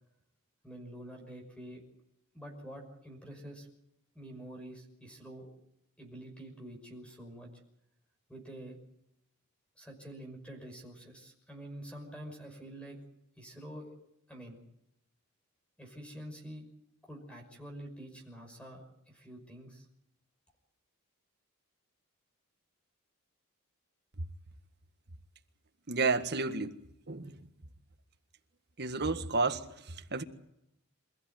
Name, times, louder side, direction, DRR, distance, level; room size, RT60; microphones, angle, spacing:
voice 1, 0.6-1.8 2.3-3.7 4.1-5.5 6.0-7.5 8.3-8.8 9.8-13.0 13.4-13.9 14.3-14.6 15.8-16.6 17.1-19.8, right 1 dB, 5° left, 5.7 m, -47 dB
voice 2, 25.9-26.7 27.1-27.3 28.8-29.6 30.1-30.2, right 3 dB, 50° right, 1.7 m, -30 dB
27.0 x 15.5 x 9.3 m
head